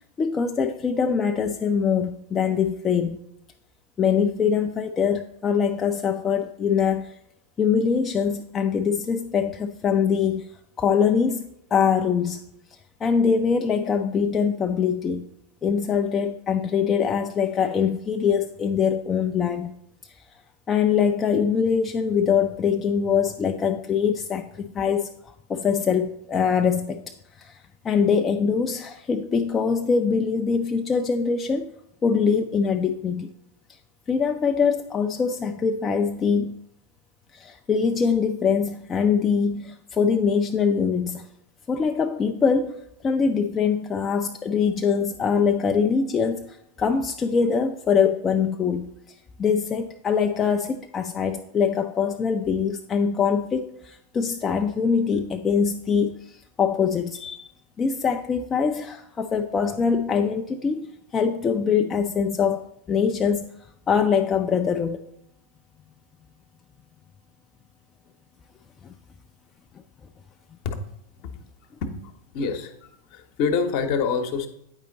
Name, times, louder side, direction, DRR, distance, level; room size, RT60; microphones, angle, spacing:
voice 1, 0.2-3.2 4.0-7.2 7.6-10.5 10.8-12.4 13.0-15.3 15.6-19.7 20.0-20.2 20.7-31.7 32.0-33.3 34.1-36.6 37.3-41.3 41.7-48.9 49.4-57.5 57.8-63.5 63.9-65.0 68.8-68.9, left 6 dB, 20° left, 5 dB, 0.4 m, -23 dB
voice 2, 72.3-74.5, left 5 dB, 45° left, 8 dB, 0.9 m, -26 dB
9.0 x 5.0 x 3.9 m, 0.77 s
figure-of-eight pair, 90°, 0 cm